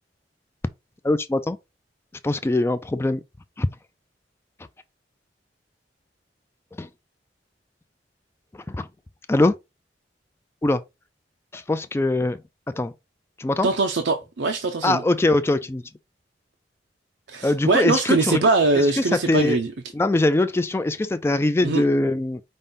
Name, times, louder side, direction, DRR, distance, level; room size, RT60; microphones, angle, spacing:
voice 1, 1.0-1.6 2.2-3.2 3.6-3.7 6.8-6.9 8.7-8.9 9.3-9.6 10.6-10.8 11.5-12.4 12.8-12.9 13.4-13.7 14.8-15.8 17.4-18.5 18.8-19.6 19.9-22.4, left 2 dB, 15° left, 0.3 m, -22 dB
voice 2, 13.6-15.0 17.3-19.7 21.6-21.8, right 3 dB, 85° right, 0.6 m, -22 dB
5.4 x 2.6 x 3.5 m
head